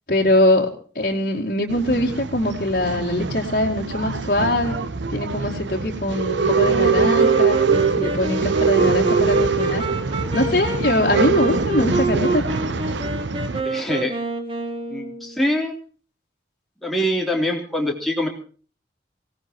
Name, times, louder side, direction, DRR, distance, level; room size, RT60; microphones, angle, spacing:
voice 1, 0.1-0.7 0.9-4.8 5.1-9.9 10.3-12.5, left 1 dB, 50° left, -3 dB, 2.5 m, -22 dB
Male speech man speaking / Chatter / Rattle, 1.7-13.6, right 5 dB, 85° right, 0.9 m, -23 dB
Wind instrument woodwind instrument, 6.6-15.4, right 2 dB, 30° right, 2.3 m, -27 dB
voice 2, 13.6-14.2 14.9-15.7 16.8-18.3, equal, ahead, -1 dB, 3.5 m, -24 dB
25.0 x 18.0 x 3.0 m, 0.40 s
head